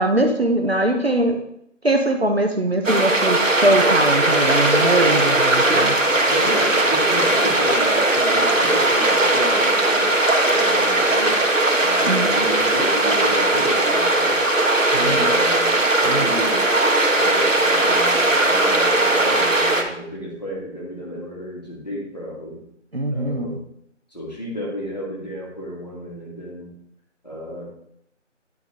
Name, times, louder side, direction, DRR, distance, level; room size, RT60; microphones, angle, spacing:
voice 1, 0.0-1.4 1.8-6.0 12.1-12.3 14.9-15.3 16.0-16.3 22.9-23.6, right 1 dB, 55° right, 5 dB, 0.9 m, -21 dB
sound 1, 2.8-19.8, right 2 dB, 90° right, 1.3 m, -18 dB
voice 2, 6.1-10.2 10.5-11.4 11.8-14.4 14.9-16.8 17.2-22.6 23.1-23.6 24.1-26.7 27.2-27.7, equal, 35° left, -4 dB, 2.0 m, -32 dB
10.5 x 4.0 x 3.5 m, 0.73 s
figure-of-eight pair, 175°, 37 cm